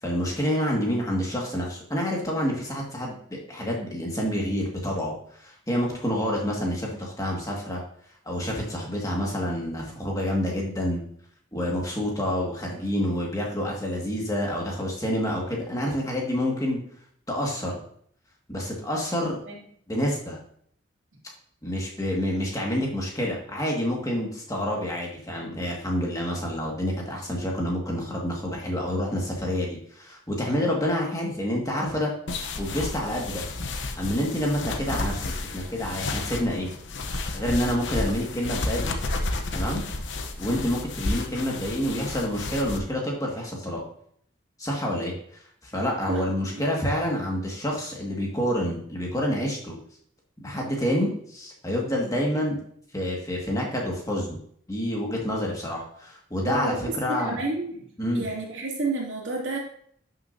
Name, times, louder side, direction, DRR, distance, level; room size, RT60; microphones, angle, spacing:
voice 1, 0.0-7.8 8.3-11.0 11.5-16.8 17.3-17.8 18.5-19.4 19.9-20.4 21.6-32.1 32.6-33.4 34.0-36.7 37.3-38.9 39.5-39.8 40.4-43.8 44.6-45.1 45.6-49.8 50.4-52.6 52.9-54.4 54.7-57.4 58.0-58.3, equal, 20° left, -2 dB, 1.9 m, -28 dB
sound 1, 32.3-42.8, left 2 dB, 75° left, 0.9 m, -32 dB
voice 2, 46.1-46.6 56.4-57.9 58.1-59.6, right 3 dB, 80° right, -2 dB, 2.6 m, -31 dB
11.0 x 6.6 x 2.7 m, 0.64 s
head